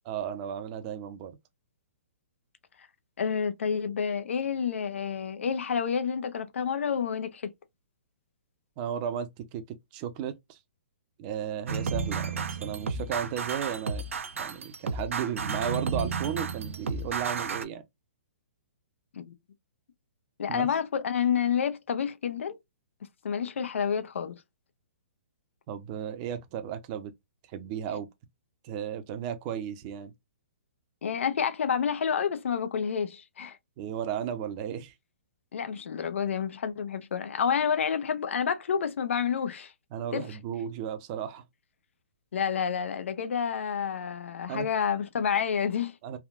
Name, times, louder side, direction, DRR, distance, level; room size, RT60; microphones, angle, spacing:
voice 1, 0.1-1.3 8.8-9.6 9.9-10.6 11.2-14.0 14.4-17.8 20.5-20.7 25.7-27.1 27.5-28.1 28.6-30.1 33.8-34.9 39.9-41.4 44.5-44.7 46.0-46.2, right 9 dB, 35° right, 0.6 m, -34 dB
voice 2, 3.2-7.5 19.1-19.3 20.4-22.6 23.2-24.4 31.0-33.6 35.5-39.7 40.1-40.3 42.3-45.9, left 7 dB, 75° left, 0.6 m, -29 dB
sound 1, 11.7-17.6, right 5 dB, 80° right, 0.5 m, -32 dB
3.5 x 2.3 x 2.4 m
hypercardioid pair, 140°, 7 cm